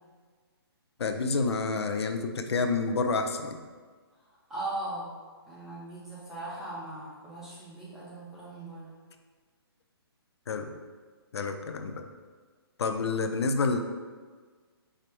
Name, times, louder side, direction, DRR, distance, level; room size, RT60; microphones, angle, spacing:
voice 1, 1.0-3.6 10.5-10.8 11.3-12.0 12.8-13.8, left 4 dB, 90° left, 6 dB, 0.5 m, -29 dB
voice 2, 4.5-5.1 5.5-8.9, right 2 dB, 5° right, -9 dB, 0.6 m, -38 dB
4.9 x 2.0 x 4.3 m, 1.5 s
hypercardioid pair, 170°, 13 cm